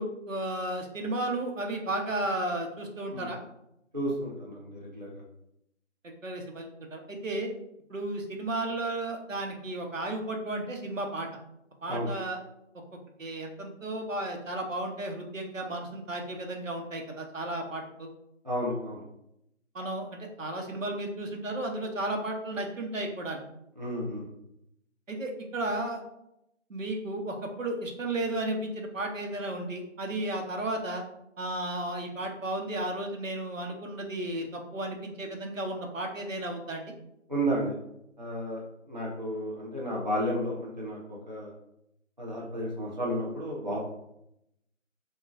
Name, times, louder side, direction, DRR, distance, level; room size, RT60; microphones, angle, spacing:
voice 1, 0.0-3.4 6.0-7.5 7.9-11.3 11.8-12.4 13.2-18.1 19.7-20.1 20.4-23.4 25.1-26.0 26.7-31.0 31.4-36.8, right 1 dB, 80° right, 2 dB, 1.0 m, -33 dB
voice 2, 3.9-5.2 11.9-12.1 18.4-19.0 23.8-24.3 37.3-37.8 38.2-38.6 38.9-41.5 42.2-43.8, equal, 35° right, -5 dB, 0.6 m, -32 dB
5.3 x 2.3 x 2.5 m, 0.80 s
figure-of-eight pair, 180°, 38 cm